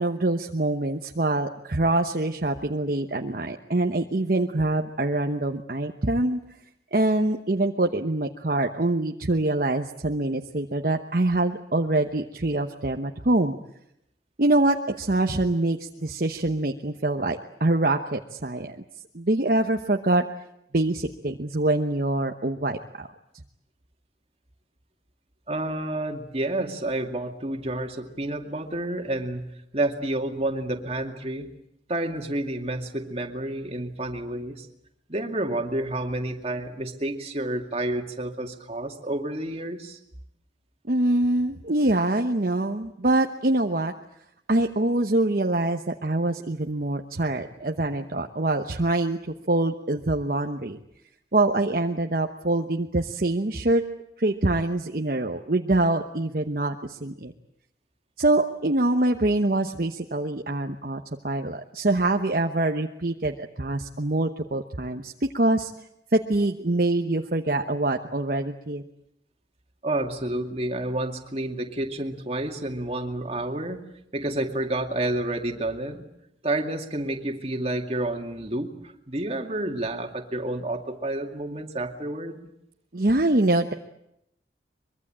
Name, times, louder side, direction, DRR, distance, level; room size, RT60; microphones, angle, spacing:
voice 1, 0.0-6.4 6.9-13.5 14.4-18.8 19.1-20.2 20.7-23.1 40.8-43.9 44.5-49.2 49.5-50.8 51.3-53.8 54.2-57.3 58.2-65.7 66.1-68.8 82.9-83.7, right 2 dB, 50° right, 4 dB, 1.0 m, -24 dB
voice 2, 25.5-29.5 29.7-31.5 31.9-34.7 35.1-40.0 69.8-73.8 74.1-76.1 76.4-78.7 79.1-82.4, right 1 dB, 35° right, 4 dB, 2.3 m, -29 dB
23.5 x 23.0 x 8.8 m, 0.79 s
head